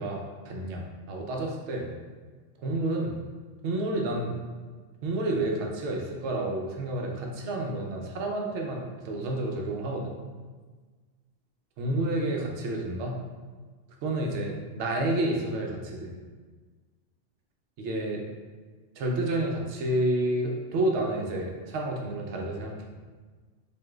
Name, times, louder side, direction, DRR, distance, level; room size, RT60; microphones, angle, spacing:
voice 1, 0.0-1.9 2.6-3.2 3.6-4.4 5.0-10.2 11.8-13.2 14.0-16.2 17.8-18.2 19.0-22.7, right 1 dB, 75° right, 0 dB, 0.9 m, -30 dB
4.7 x 2.5 x 2.3 m, 1.4 s
omnidirectional pair, 1.2 m